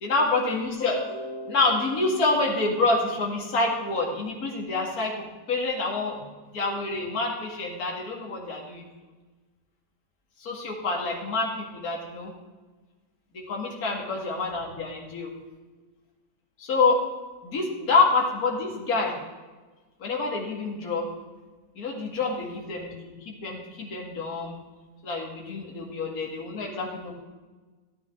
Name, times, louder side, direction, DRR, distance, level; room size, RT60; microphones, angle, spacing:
voice 1, 0.0-6.2 6.5-8.8 10.4-12.3 13.3-15.3 16.6-17.0 17.4-19.2 20.0-21.1 21.8-24.6 25.0-27.1, left 3 dB, 50° left, -1 dB, 2.2 m, -27 dB
13.5 x 10.5 x 3.6 m, 1.3 s
omnidirectional pair, 2.1 m